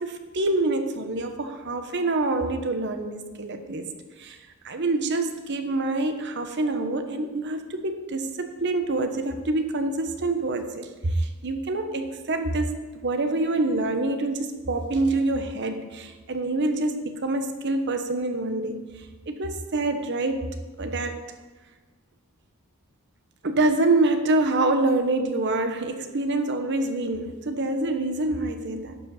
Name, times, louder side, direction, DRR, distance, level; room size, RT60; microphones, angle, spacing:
voice 1, 0.0-3.9 4.2-4.4 4.6-12.7 13.0-18.8 19.3-20.5 20.8-21.2 23.4-29.0, right 2 dB, 50° right, 7 dB, 0.9 m, -26 dB
11.5 x 5.1 x 6.4 m, 1.3 s
head